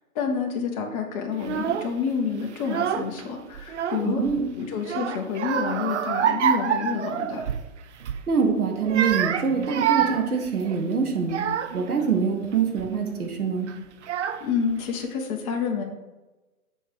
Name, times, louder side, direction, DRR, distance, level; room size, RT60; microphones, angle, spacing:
voice 1, 0.1-4.2 4.6-7.4 14.4-15.8, left 6 dB, 25° left, 1 dB, 0.9 m, -28 dB
Child speech kid speaking / Crying sobbing, 1.4-1.9 2.6-3.2 3.5-4.4 4.8-7.7 8.0-8.3 8.8-11.9 12.5-12.9 13.7-13.8 14.0-14.7, right 9 dB, 55° right, 0.6 m, -27 dB
voice 2, 4.0-4.4 8.3-11.4 11.7-13.7, right 5 dB, 80° right, 3 dB, 1.7 m, -24 dB
7.3 x 4.5 x 4.6 m, 1.1 s
hypercardioid pair, 135°, 44 cm